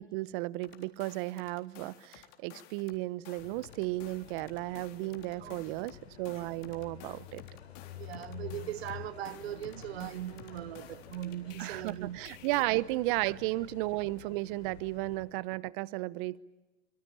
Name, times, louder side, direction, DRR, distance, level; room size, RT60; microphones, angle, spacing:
voice 1, 0.0-7.4 11.6-16.4, right 19 dB, 55° right, 1.0 m, -34 dB
sound 1, 0.6-3.0 3.2-11.9 12.2-12.6, left 11 dB, 55° left, 3.8 m, -53 dB
sound 2, 3.4-15.3, left 10 dB, 85° left, 3.8 m, -50 dB
voice 2, 5.4-5.9 8.0-12.2 13.2-13.4, right 13 dB, 80° right, 0.8 m, -40 dB
25.0 x 24.0 x 8.8 m
hypercardioid pair, 115°, 31 cm